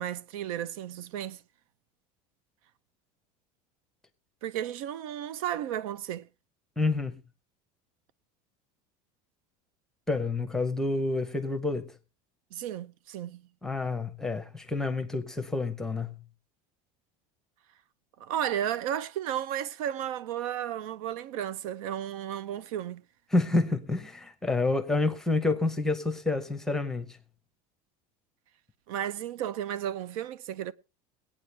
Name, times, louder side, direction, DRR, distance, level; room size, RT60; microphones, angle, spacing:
voice 1, 0.0-1.4 4.4-6.3 12.5-13.4 18.2-23.0 28.9-30.7, right 10 dB, 90° right, 0.6 m, -33 dB
voice 2, 6.8-7.2 10.1-11.9 13.6-16.1 23.3-27.2, left 3 dB, 5° left, 0.6 m, -28 dB
22.5 x 8.8 x 3.3 m
cardioid pair, 170°, 18 cm